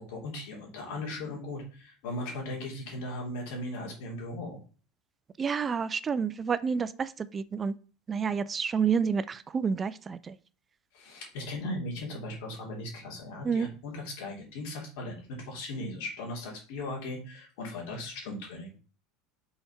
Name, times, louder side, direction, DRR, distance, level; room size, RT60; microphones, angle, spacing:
voice 1, 0.0-4.6 10.9-18.8, left 1 dB, 70° left, -1 dB, 3.2 m, -38 dB
voice 2, 5.4-7.8 8.1-10.4 13.4-13.7, right 6 dB, 25° right, 15 dB, 0.4 m, -29 dB
5.7 x 4.2 x 5.7 m, 0.38 s
supercardioid pair, 100°, 0 cm